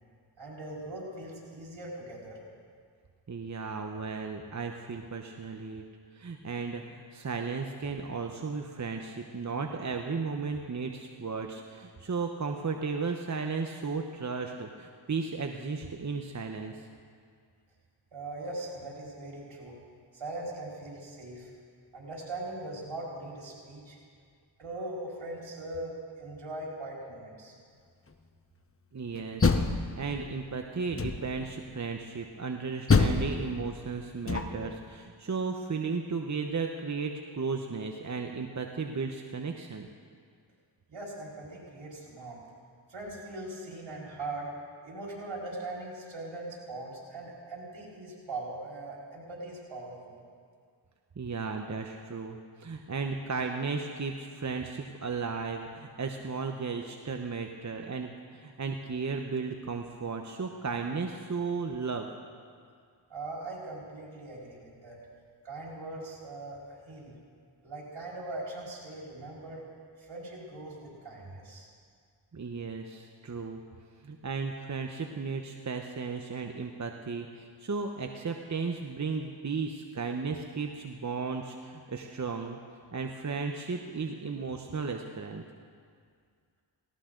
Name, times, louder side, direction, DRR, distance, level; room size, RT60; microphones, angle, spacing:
voice 1, 0.4-2.4 18.1-19.7 20.1-21.5 21.9-24.0 24.6-27.5 40.9-42.4 42.9-44.5 44.8-50.2 63.1-65.0 65.4-67.1 67.6-69.6 70.0-71.7, right 2 dB, 70° right, -4 dB, 4.9 m, -40 dB
voice 2, 3.3-5.8 6.1-16.9 28.9-39.9 51.2-62.1 72.3-73.6 74.0-82.6 82.9-85.4, right 4 dB, 40° right, 4 dB, 1.0 m, -35 dB
Door, 29.2-30.4 31.0-31.5 32.9-34.8, left 4 dB, 30° left, 1.0 m, -27 dB
18.0 x 17.5 x 3.9 m, 2.1 s
cardioid pair, 55°, 46 cm